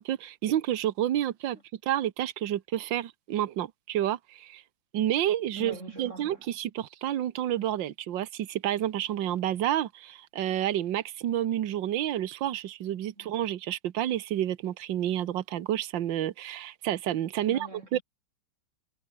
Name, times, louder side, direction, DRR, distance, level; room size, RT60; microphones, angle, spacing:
voice 1, 0.0-1.6 1.8-4.6 4.9-17.6 17.9-18.0, right 12 dB, 75° right, 1.7 m, -29 dB
voice 2, 5.6-6.4 13.2-13.3 17.4-18.0, right 1 dB, 35° right, 8.0 m, -43 dB
omnidirectional pair, 2.1 m